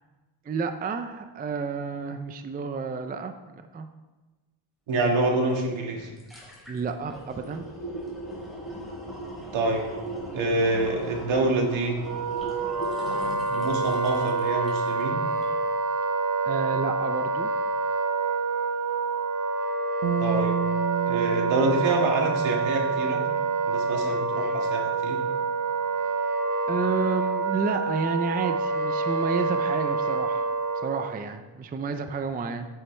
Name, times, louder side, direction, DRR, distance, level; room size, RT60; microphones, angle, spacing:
voice 1, 0.5-3.3 3.7-3.9 6.7-7.7 16.4-17.5 26.7-30.5 30.8-32.7, right 4 dB, 20° right, 8 dB, 0.4 m, -30 dB
voice 2, 4.9-6.1 9.5-9.8 10.3-12.0 13.3-15.2 20.2-20.5 21.1-23.3 23.7-25.2, right 2 dB, 70° right, 1 dB, 2.0 m, -26 dB
sound 1, 5.6-5.7 6.0-15.1 15.4-15.5, right 1 dB, ahead, 3.3 m, -38 dB
Wind instrument woodwind instrument, 12.0-31.1, right 4 dB, 40° right, 0.8 m, -27 dB
sound 2, 20.0-23.4, right 10 dB, 90° right, 1.0 m, -32 dB
9.3 x 9.1 x 3.3 m, 1.2 s
cardioid pair, 130°, 49 cm